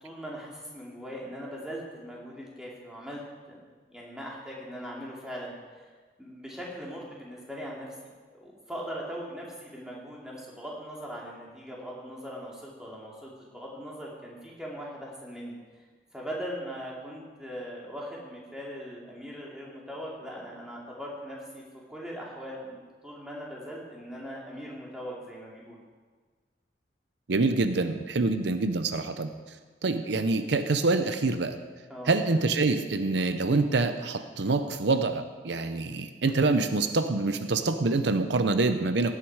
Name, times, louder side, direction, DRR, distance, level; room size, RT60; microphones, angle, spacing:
voice 1, 0.0-3.2 3.5-3.6 3.9-5.9 6.2-7.9 8.3-15.5 16.1-22.8 23.0-25.8 31.9-32.2, equal, 5° right, -4 dB, 2.7 m, -40 dB
voice 2, 27.3-29.3 29.8-31.6 32.1-39.2, right 3 dB, 80° right, 9 dB, 0.7 m, -26 dB
16.5 x 9.4 x 4.8 m, 1.5 s
head